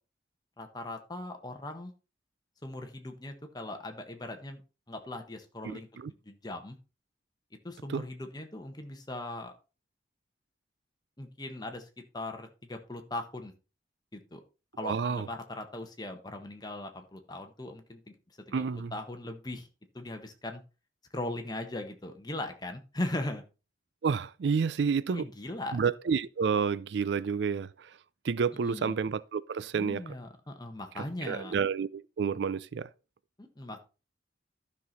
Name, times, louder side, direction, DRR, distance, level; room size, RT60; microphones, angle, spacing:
voice 1, 0.6-1.9 2.6-4.6 4.9-6.7 7.6-9.5 11.2-11.9 12.1-13.5 14.1-14.4 14.8-18.1 18.5-18.6 18.9-19.7 19.9-20.6 21.1-23.4 25.1-25.8 28.6-29.0 29.8-31.5 33.4-33.8, left 1 dB, 20° left, 1.3 m, -39 dB
voice 2, 5.6-6.1 7.9-8.1 14.8-15.3 18.5-18.9 24.0-25.3 25.7-28.0 28.2-30.1 31.0-32.9, right 6 dB, 70° right, 0.4 m, -30 dB
12.0 x 6.0 x 4.0 m
head